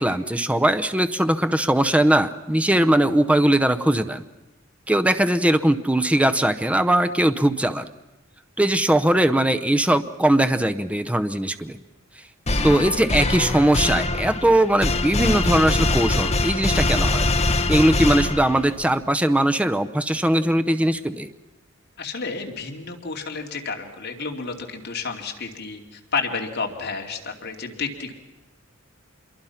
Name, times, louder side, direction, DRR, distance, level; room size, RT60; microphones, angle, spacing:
voice 1, 0.0-4.2 4.9-7.9 8.6-11.8 12.6-17.3 17.7-21.3, right 1 dB, 5° right, 9 dB, 0.7 m, -20 dB
sound 1, 12.5-18.8, left 2 dB, 30° left, 1.3 m, -23 dB
voice 2, 22.0-28.1, left 4 dB, 55° left, 2 dB, 2.6 m, -31 dB
26.5 x 22.5 x 5.8 m, 0.98 s
head